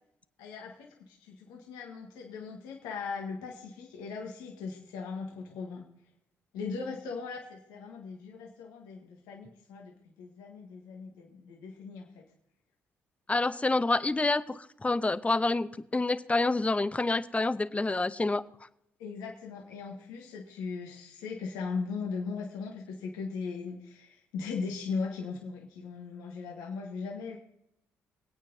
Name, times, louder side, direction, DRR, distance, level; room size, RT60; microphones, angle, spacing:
voice 1, 0.4-5.9 6.5-9.9 10.2-12.2 19.0-27.4, left 5 dB, 80° left, 0 dB, 1.6 m, -38 dB
voice 2, 13.3-18.4, left 2 dB, 20° left, 15 dB, 0.7 m, -28 dB
24.5 x 8.7 x 2.7 m, 0.76 s
hypercardioid pair, 50°, 7 cm